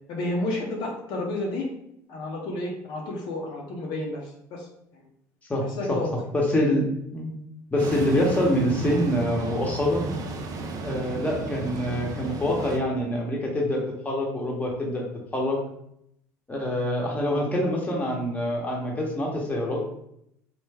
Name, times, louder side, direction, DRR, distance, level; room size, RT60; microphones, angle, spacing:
voice 1, 0.1-1.7 2.1-4.7 4.9-5.0 5.6-6.1, left 2 dB, 60° left, -1 dB, 0.7 m, -31 dB
voice 2, 5.5-6.0 6.3-6.9 7.1-7.3 7.7-10.1 10.8-15.0 15.3-15.6 16.5-19.8, left 1 dB, 15° left, -1 dB, 1.0 m, -25 dB
sound 1, 7.8-12.8, right 2 dB, 45° right, 0.5 m, -34 dB
3.1 x 2.2 x 3.4 m, 0.76 s
hypercardioid pair, 70°, 9 cm